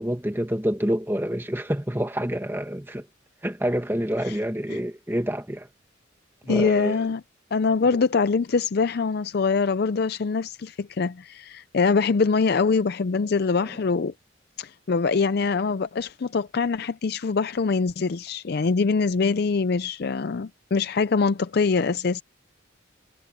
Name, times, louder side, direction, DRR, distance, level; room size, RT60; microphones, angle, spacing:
voice 1, 0.0-3.1 3.4-5.7 6.5-7.0 13.6-13.7, equal, 10° right, 1.6 m, -27 dB
voice 2, 6.5-7.2 7.5-14.1 14.6-22.2, left 4 dB, 50° left, 0.4 m, -24 dB
head